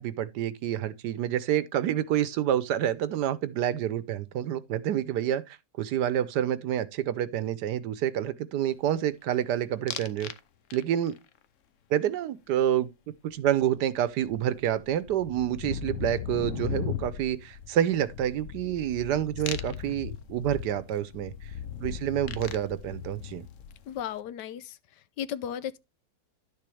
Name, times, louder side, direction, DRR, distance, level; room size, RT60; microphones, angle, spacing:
voice 1, 0.0-10.3 10.7-11.1 11.9-12.9 13.2-21.3 21.8-23.4, right 11 dB, 75° right, 1.3 m, -28 dB
sound 1, 9.9-10.4 10.7-11.2 13.6-13.7 13.9-24.0, left 9 dB, 60° left, 0.9 m, -37 dB
voice 2, 23.9-24.8 25.2-25.8, left 9 dB, 80° left, 1.3 m, -35 dB
11.0 x 6.9 x 3.3 m
omnidirectional pair, 1.9 m